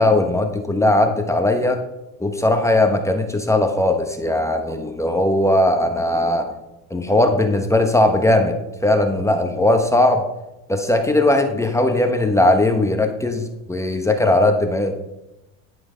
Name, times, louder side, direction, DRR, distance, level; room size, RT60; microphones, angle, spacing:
voice 1, 0.0-1.8 2.2-6.5 6.9-10.2 10.7-14.9, left 1 dB, 5° left, 5 dB, 1.0 m, -18 dB
11.0 x 6.2 x 5.0 m, 0.93 s
supercardioid pair, 125°, 39 cm